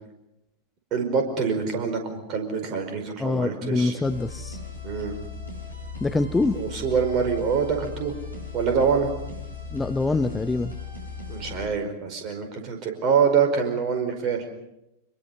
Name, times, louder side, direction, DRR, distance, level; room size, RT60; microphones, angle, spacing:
voice 1, 0.9-4.0 4.8-5.1 6.5-8.1 8.5-9.1 11.3-14.4, right 6 dB, 35° right, 6 dB, 5.0 m, -25 dB
voice 2, 3.2-4.6 6.0-6.6 9.7-10.7, left 3 dB, 10° left, 9 dB, 0.9 m, -25 dB
sound 1, 4.0-11.6, left 5 dB, 85° left, 4.4 m, -37 dB
26.0 x 22.5 x 5.6 m, 0.87 s
figure-of-eight pair, 90°, 0 cm